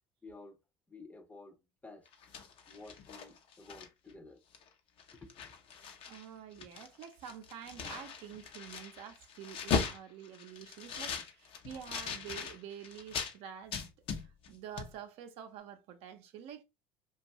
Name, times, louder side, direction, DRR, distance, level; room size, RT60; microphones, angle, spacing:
voice 1, 0.2-0.6 0.9-1.6 1.8-2.1 2.7-4.4 5.1-5.5, left 3 dB, 15° left, 0.6 m, -52 dB
sound 1, 2.1-4.1 4.5-4.7 5.0-6.3 6.5-13.3 13.7-14.5 14.8-14.9, left 6 dB, 55° left, 0.6 m, -39 dB
voice 2, 6.1-13.8 14.2-16.6, right 9 dB, 65° right, 0.5 m, -48 dB
2.5 x 2.3 x 2.8 m
hypercardioid pair, 80°, 11 cm